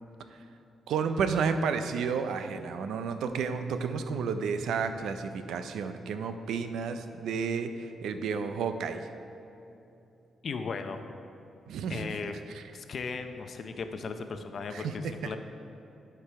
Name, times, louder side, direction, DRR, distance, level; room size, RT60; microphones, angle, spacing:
voice 1, 0.9-9.1 11.7-12.1 12.5-12.6 14.7-15.1, right 6 dB, 85° right, 9 dB, 0.5 m, -31 dB
sound 1, 3.2-9.0, right 2 dB, 55° right, 1.9 m, -45 dB
voice 2, 10.4-11.0 11.9-12.3 12.7-15.4, left 4 dB, 55° left, 7 dB, 0.6 m, -36 dB
12.0 x 4.7 x 4.7 m, 3.0 s
cardioid pair, 90°, 0 cm